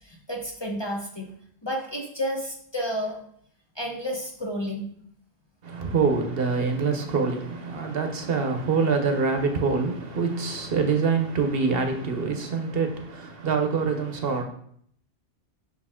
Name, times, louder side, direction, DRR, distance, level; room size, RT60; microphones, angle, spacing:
voice 1, 0.1-1.3 1.6-3.2 3.8-4.9, equal, 25° left, 0.9 m, -31 dB
voice 2, 5.6-14.4, right 4 dB, 60° right, 1.0 m, -25 dB
6.1 x 4.8 x 3.6 m
omnidirectional pair, 1.1 m